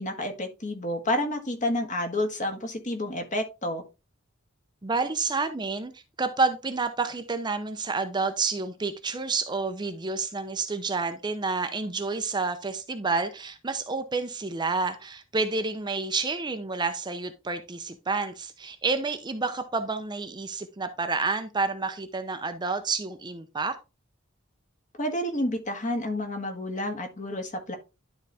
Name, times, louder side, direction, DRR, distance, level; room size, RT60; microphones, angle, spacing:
voice 1, 0.0-3.8 25.0-27.7, left 1 dB, 40° left, 1.6 m, -30 dB
voice 2, 4.8-23.8, right 4 dB, 20° right, 0.6 m, -29 dB
11.5 x 4.0 x 3.4 m
head